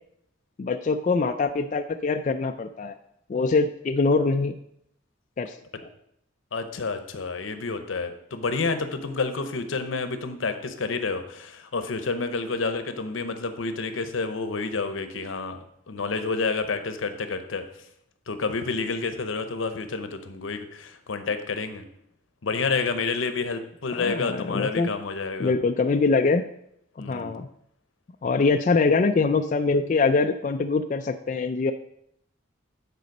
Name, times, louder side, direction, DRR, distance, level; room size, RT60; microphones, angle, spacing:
voice 1, 0.6-2.9 3.3-4.6 5.4-5.6 23.9-24.9 25.4-26.5 27.1-27.5 28.2-31.7, left 4 dB, 40° left, 6 dB, 0.3 m, -23 dB
voice 2, 6.5-17.6 18.3-21.8 22.4-25.5 27.0-27.3, left 4 dB, 85° left, 9 dB, 0.8 m, -29 dB
9.3 x 4.1 x 5.3 m, 0.75 s
head